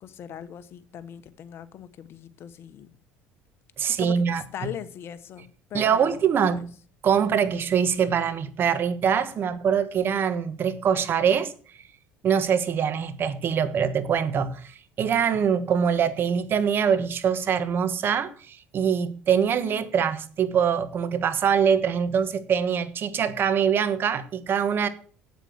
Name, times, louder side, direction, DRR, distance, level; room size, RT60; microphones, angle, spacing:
voice 1, 0.0-2.9 4.0-6.7 19.6-20.0, left 10 dB, 50° left, 1.2 m, -40 dB
voice 2, 3.8-4.4 5.7-6.7 7.0-11.5 12.2-24.9, right 7 dB, 45° right, 1.4 m, -24 dB
8.6 x 8.1 x 7.9 m
supercardioid pair, 95°, 5 cm